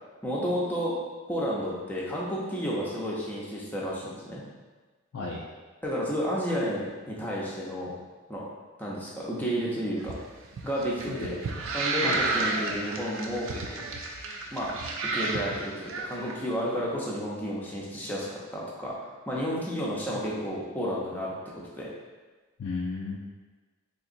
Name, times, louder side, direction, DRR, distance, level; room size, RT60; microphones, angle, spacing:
voice 1, 0.2-0.9 1.3-4.4 5.8-7.9 8.3-8.4 8.8-10.2 10.6-11.4 11.7-13.8 14.5-14.7 15.1-21.3 21.8-21.9, equal, 10° left, -5 dB, 0.5 m, -31 dB
sound 1, 10.0-16.3, right 3 dB, 70° right, 0.4 m, -32 dB
voice 2, 11.1-11.4 12.0-12.3 20.4-20.5 22.6-23.2, left 3 dB, 80° left, -3 dB, 0.4 m, -34 dB
3.8 x 2.9 x 2.5 m, 1.3 s
head